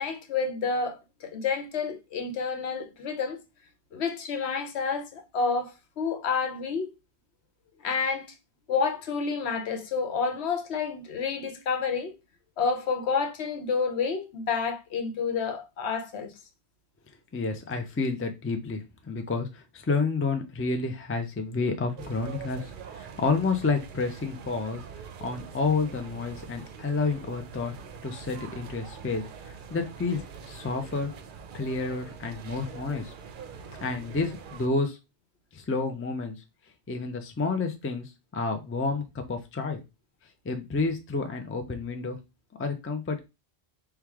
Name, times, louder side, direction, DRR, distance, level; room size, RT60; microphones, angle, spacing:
voice 1, 0.0-3.4 3.9-6.9 7.8-8.3 8.7-12.1 12.6-16.3, left 5 dB, 75° left, 1.0 m, -29 dB
voice 2, 17.3-24.8 25.2-27.7 28.0-31.1 31.5-33.1 33.8-35.0 35.5-36.4 36.9-39.8 40.4-42.2 42.6-43.2, left 4 dB, 20° left, 0.4 m, -30 dB
sound 1, 22.0-34.7, right 6 dB, 60° right, 0.6 m, -44 dB
4.6 x 2.3 x 3.5 m
omnidirectional pair, 1.1 m